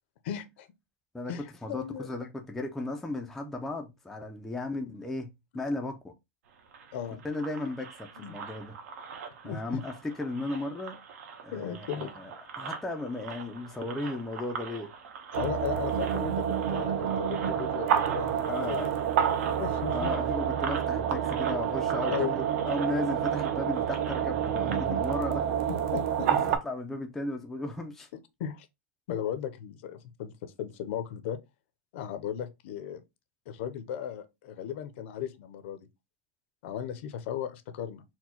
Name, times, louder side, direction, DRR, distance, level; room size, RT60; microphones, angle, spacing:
voice 1, 0.2-0.7 1.3-2.1 4.9-5.0 6.9-7.2 7.6-7.7 8.2-8.3 9.4-9.8 11.5-12.1 15.3-18.8 19.2-20.1 22.1-22.4 25.7-26.3 28.4-28.7 29.1-31.4 31.9-33.0 33.5-35.9 36.6-38.0, left 9 dB, 55° left, 0.6 m, -36 dB
voice 2, 1.6-5.3 5.5-6.1 7.1-8.7 9.4-11.0 11.4-14.9 18.4-18.9 19.9-25.6 26.3-28.1, left 2 dB, 5° left, 0.4 m, -35 dB
sound 1, 6.5-25.2, right 5 dB, 85° right, 1.2 m, -42 dB
sound 2, 15.3-26.6, right 9 dB, 60° right, 0.7 m, -28 dB
4.4 x 2.1 x 4.2 m
supercardioid pair, 175°, 8 cm